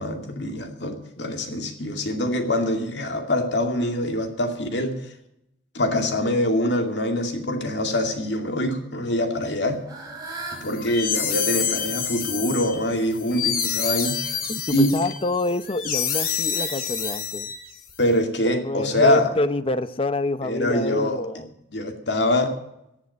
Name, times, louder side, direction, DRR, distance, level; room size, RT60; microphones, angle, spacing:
voice 1, 0.0-5.0 5.7-9.8 10.6-14.2 14.7-15.0 18.0-19.3 20.4-21.2 21.7-22.5, left 1 dB, 75° left, 2.4 m, -24 dB
Fowl / Bird, 9.3-14.6, right 3 dB, 20° right, 5.3 m, -42 dB
sound 1, 10.6-17.9, left 8 dB, 55° left, 2.6 m, -28 dB
voice 2, 14.5-17.5 18.5-21.5, left 2 dB, 30° left, 0.7 m, -27 dB
14.5 x 7.8 x 9.5 m
head